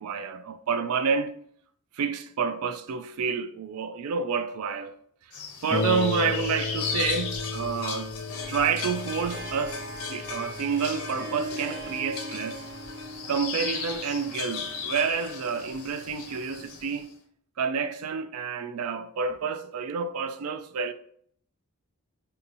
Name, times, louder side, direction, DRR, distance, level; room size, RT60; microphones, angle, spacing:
voice 1, 0.0-1.3 1.9-4.9 5.6-8.2 8.5-12.7 13.3-17.1 17.6-20.9, right 5 dB, 70° right, 0.4 m, -29 dB
sound 1, 5.3-17.0, left 6 dB, 70° left, 0.6 m, -36 dB
Harp, 5.7-14.9 15.7-15.8 16.3-16.4, left 3 dB, 15° left, 0.6 m, -36 dB
Harp 2, 8.2-16.5, right 1 dB, 50° right, 1.0 m, -42 dB
2.7 x 2.6 x 4.1 m
head